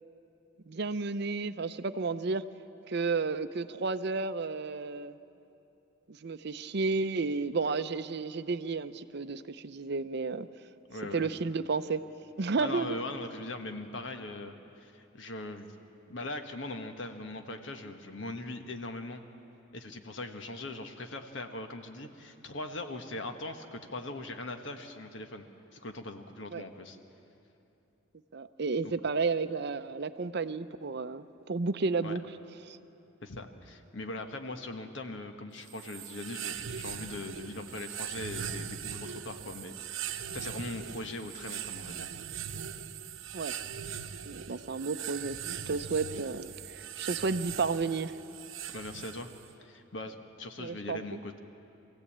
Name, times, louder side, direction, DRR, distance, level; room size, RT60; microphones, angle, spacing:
voice 1, 0.7-2.4 2.9-5.2 6.1-10.5 11.1-12.0 12.4-13.0 26.5-26.6 28.3-32.2 32.7-32.8 43.3-43.5 44.3-48.2 50.6-51.2, right 4 dB, 55° right, 12 dB, 0.6 m, -32 dB
voice 2, 10.9-11.3 12.6-15.7 16.1-19.2 19.7-25.4 25.7-27.0 28.8-28.9 32.0-32.2 33.2-42.1 48.7-49.3 49.6-51.4, left 2 dB, 65° left, 6 dB, 1.4 m, -40 dB
sound 1, 35.7-49.5, right 8 dB, 75° right, 0.9 m, -40 dB
23.5 x 16.0 x 8.6 m, 2.9 s
head